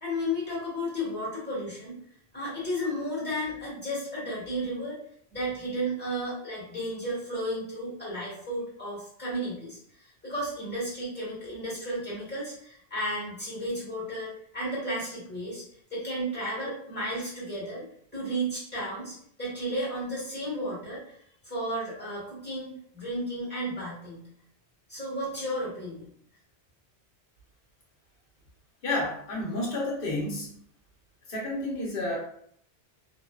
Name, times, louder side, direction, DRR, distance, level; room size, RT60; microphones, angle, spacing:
voice 1, 0.0-2.0 2.3-5.0 5.3-15.6 15.9-17.8 18.1-21.1 21.4-24.2 24.9-26.0, equal, 10° left, -8 dB, 1.2 m, -33 dB
voice 2, 28.8-30.6 31.3-32.2, left 2 dB, 60° left, -3 dB, 1.0 m, -30 dB
2.6 x 2.2 x 2.2 m, 0.66 s
omnidirectional pair, 1.1 m